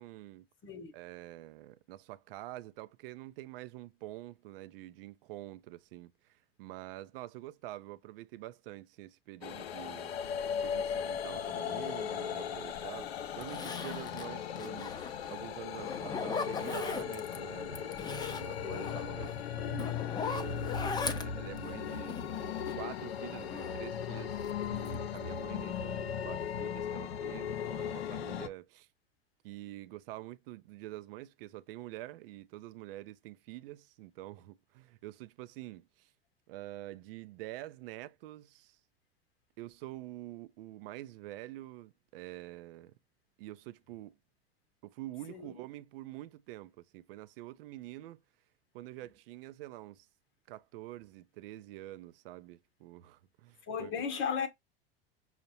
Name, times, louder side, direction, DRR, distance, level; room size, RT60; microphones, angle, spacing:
voice 1, 0.0-0.5 0.9-10.1 10.6-15.0 15.3-22.2 22.7-28.9 29.4-36.1 36.5-38.8 39.6-42.9 43.4-44.2 44.8-48.2 48.7-50.1 50.5-53.9, right 16 dB, 70° right, 0.4 m, -47 dB
sound 1, 9.4-28.5, left 8 dB, 90° left, 0.5 m, -37 dB
Zipper (clothing), 12.7-12.8 13.4-15.4 15.8-17.4 17.7-22.9 23.3-24.5 24.8-25.3 25.6-25.8, left 4 dB, 15° left, 0.4 m, -40 dB
voice 2, 18.6-19.0 45.3-45.6 53.7-54.5, left 6 dB, 40° left, 0.8 m, -36 dB
5.5 x 2.1 x 2.8 m
hypercardioid pair, 90°, 30 cm